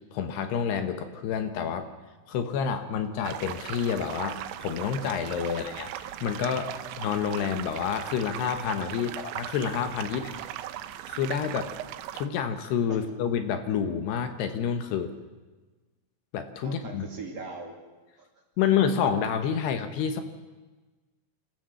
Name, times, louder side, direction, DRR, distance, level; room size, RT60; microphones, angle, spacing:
voice 1, 0.1-1.9 2.3-5.9 6.2-10.4 11.1-11.7 12.1-15.1 16.3-17.1 18.6-20.2, left 7 dB, 70° left, 8 dB, 3.1 m, -28 dB
sound 1, 3.2-12.3, right 12 dB, 85° right, 3.2 m, -38 dB
voice 2, 10.1-10.4 12.9-13.0 16.6-17.8 18.2-18.3, right 4 dB, 40° right, 0 dB, 3.1 m, -41 dB
27.5 x 14.5 x 7.7 m, 1.3 s
omnidirectional pair, 5.2 m